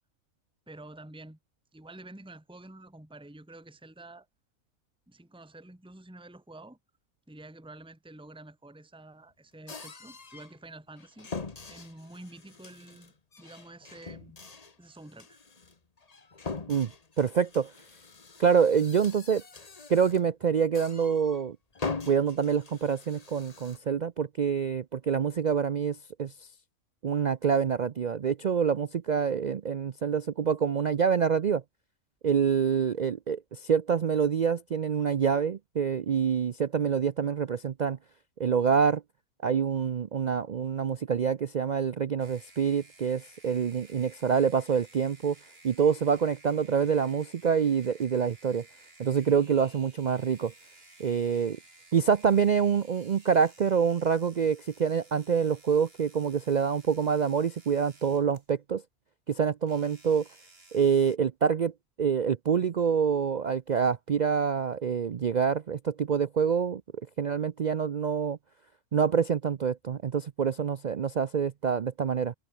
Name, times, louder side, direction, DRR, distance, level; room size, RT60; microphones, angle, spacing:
voice 1, 0.7-1.4 1.7-4.3 5.1-6.8 7.3-11.3 11.7-14.4 14.8-15.4, right 2 dB, 5° right, 1.8 m, -49 dB
sound 1, 9.7-10.6 11.0-20.3 20.7-21.5 21.7-23.8, left 4 dB, 30° left, 1.3 m, -42 dB
voice 2, 17.2-17.7 18.4-19.4 19.9-21.6 22.1-26.3 27.0-31.6 32.2-38.0 38.4-39.0 39.4-45.3 45.6-48.6 49.0-50.5 51.0-51.6 51.9-58.8 59.3-60.2 60.7-61.7 62.0-66.8 67.2-68.4 68.9-72.3, right 7 dB, 70° right, 0.4 m, -26 dB
sound 2, 42.2-58.5 59.6-61.2, right 2 dB, 45° right, 4.4 m, -56 dB
omnidirectional pair, 1.5 m